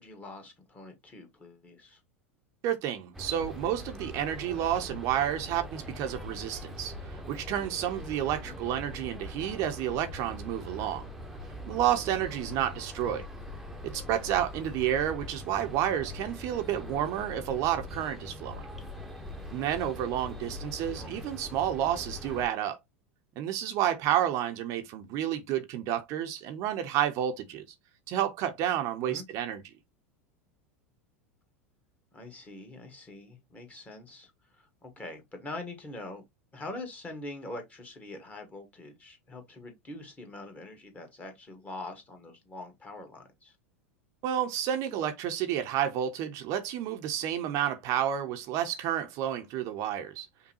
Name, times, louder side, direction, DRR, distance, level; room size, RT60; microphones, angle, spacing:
voice 1, 0.0-2.0 8.4-8.6 13.1-13.2 20.9-21.1 29.0-29.2 32.1-34.3 34.6-36.2 36.5-43.5, left 2 dB, 20° left, 1.4 m, -44 dB
voice 2, 2.6-11.1 11.7-13.2 13.8-18.6 19.5-22.8 23.4-27.7 28.1-29.6 44.2-50.3, right 11 dB, 45° right, 0.7 m, -30 dB
sound 1, 3.1-22.5, left 1 dB, 5° right, 0.9 m, -42 dB
5.4 x 2.2 x 2.8 m
figure-of-eight pair, 85°, 7 cm